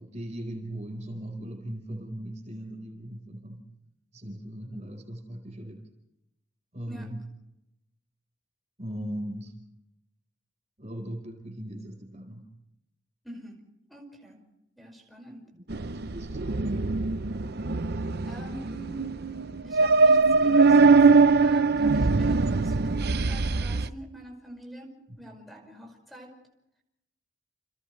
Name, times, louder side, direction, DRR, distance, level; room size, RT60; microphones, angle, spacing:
voice 1, 0.0-3.7 4.1-5.9 6.7-7.2 8.8-9.5 10.8-12.5 15.5-16.7, right 1 dB, 35° right, 4 dB, 4.6 m, -39 dB
voice 2, 13.2-13.6 13.9-14.4 14.8-15.5 18.2-19.0 19.6-26.3, right 1 dB, ahead, 2 dB, 5.4 m, -45 dB
sound 1, 15.7-23.9, right 4 dB, 55° right, 0.7 m, -22 dB
30.0 x 29.0 x 3.3 m, 0.86 s
head